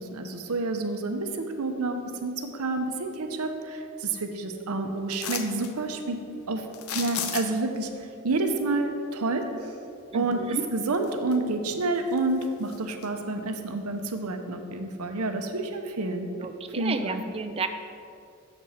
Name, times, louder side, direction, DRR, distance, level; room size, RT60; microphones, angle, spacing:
voice 1, 0.0-6.2 6.5-6.6 6.9-9.7 10.1-16.3 16.8-17.2, right 2 dB, 85° right, 6 dB, 0.7 m, -29 dB
sound 1, 5.1-5.7 6.7-7.8 10.3-10.4 10.9-11.6 12.0-13.1 13.5-13.6, left 8 dB, 75° left, 0.6 m, -34 dB
voice 2, 10.1-10.7 16.4-17.7, right 4 dB, 25° right, 8 dB, 0.3 m, -32 dB
7.0 x 4.3 x 6.3 m, 2.4 s
head